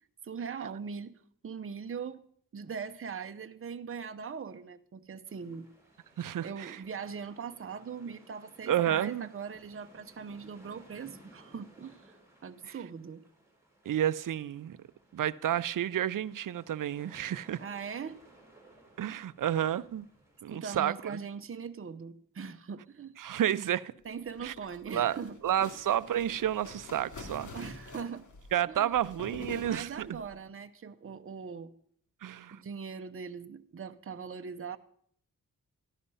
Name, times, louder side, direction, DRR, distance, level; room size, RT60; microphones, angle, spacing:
voice 1, 0.2-1.1 1.4-2.2 2.5-5.7 6.4-12.2 12.4-13.2 17.6-18.2 20.5-23.1 24.0-25.7 27.5-28.3 28.7-28.9 29.4-31.7 32.5-34.8, right 6 dB, 40° right, 0.8 m, -41 dB
sound 1, 5.3-21.2, right 1 dB, 10° right, 5.2 m, -59 dB
voice 2, 6.2-6.8 8.7-9.3 12.6-12.7 13.9-14.8 15.1-17.6 19.0-20.1 20.4-20.9 23.2-23.9 24.4-24.5 24.9-25.2 25.4-27.5 28.5-30.2 32.2-32.6, right 11 dB, 70° right, 0.6 m, -30 dB
sound 2, 24.3-30.3, left 3 dB, 65° left, 2.7 m, -47 dB
14.0 x 11.0 x 5.5 m
cardioid pair, 75°, 33 cm